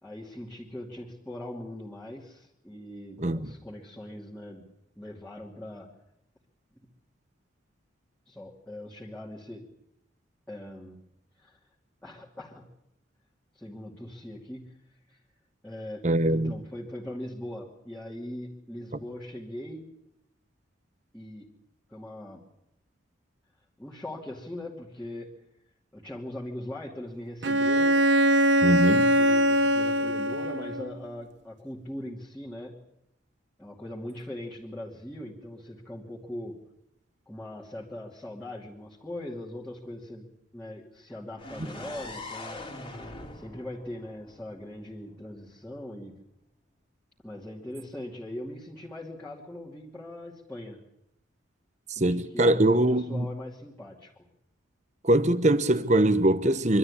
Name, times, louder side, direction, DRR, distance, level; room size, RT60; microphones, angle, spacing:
voice 1, 0.0-4.7 5.0-5.9 6.8-6.9 8.3-9.7 10.5-11.0 11.4-11.6 12.0-12.7 13.5-14.8 15.1-15.2 15.6-19.9 21.1-21.5 21.9-22.4 23.8-25.3 25.9-28.0 28.9-32.8 33.6-36.6 37.3-42.6 43.3-46.2 47.2-50.8 52.0-54.3, left 1 dB, 5° left, 2.7 m, -40 dB
voice 2, 16.0-16.5 28.6-29.0 52.0-53.3 55.0-56.8, right 1 dB, 35° right, 1.0 m, -22 dB
Bowed string instrument, 27.4-30.9, right 1 dB, 60° right, 1.0 m, -22 dB
sound 1, 41.4-45.2, left 2 dB, 25° left, 2.7 m, -42 dB
25.0 x 13.0 x 9.9 m
head